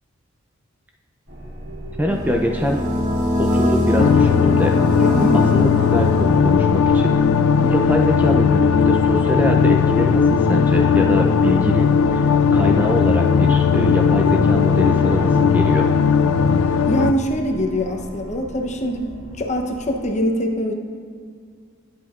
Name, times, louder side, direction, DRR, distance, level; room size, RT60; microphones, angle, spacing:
sound 1, 1.3-20.0, right 1 dB, 55° right, 1.8 m, -37 dB
voice 1, 2.0-2.8 3.4-4.7 5.3-7.1 7.6-15.9, equal, 10° right, 1 dB, 0.5 m, -23 dB
sound 2, 2.1-6.7, left 2 dB, 35° right, 1.6 m, -23 dB
sound 3, 4.0-17.1, left 6 dB, 80° left, 0.3 m, -17 dB
voice 2, 4.9-5.4 16.9-20.7, equal, 35° left, 3 dB, 0.8 m, -23 dB
13.0 x 8.4 x 2.5 m, 2.1 s
head